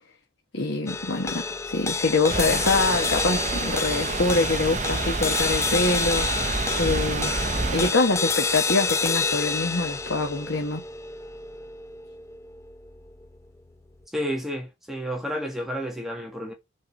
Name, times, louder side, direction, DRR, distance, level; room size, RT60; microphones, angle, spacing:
voice 1, 0.5-7.3 7.7-10.8, left 3 dB, 80° left, 1.4 m, -25 dB
sound 1, 0.9-13.4, left 4 dB, 15° left, 0.5 m, -29 dB
sound 2, 2.3-7.9, right 3 dB, 35° right, 0.7 m, -29 dB
voice 2, 14.1-16.5, equal, ahead, 1.7 m, -31 dB
6.6 x 4.9 x 6.0 m
head